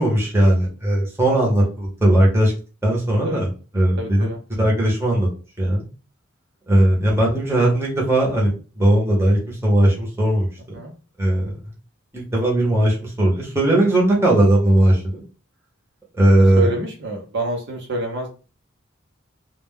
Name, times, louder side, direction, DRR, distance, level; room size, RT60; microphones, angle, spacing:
voice 1, 0.0-2.5 2.8-3.5 3.7-4.3 4.6-5.3 5.6-5.9 6.7-10.8 11.2-11.8 12.1-15.2 16.1-16.7, right 1 dB, 10° right, -3 dB, 0.8 m, -18 dB
voice 2, 4.0-4.4 6.7-7.1 10.7-10.9 16.6-18.3, right 1 dB, 55° right, 1 dB, 0.7 m, -28 dB
2.2 x 2.1 x 3.5 m, 0.34 s
head